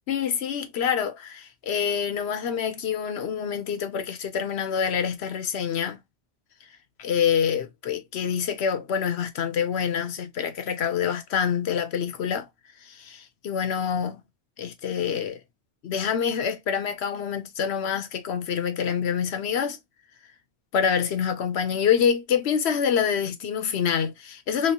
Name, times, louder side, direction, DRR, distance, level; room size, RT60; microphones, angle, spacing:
voice 1, 0.1-6.0 7.0-12.5 12.8-14.2 14.6-15.4 15.8-19.8 20.7-24.7, left 7 dB, 80° left, 1.0 m, -26 dB
3.1 x 3.1 x 2.7 m
omnidirectional pair, 1.1 m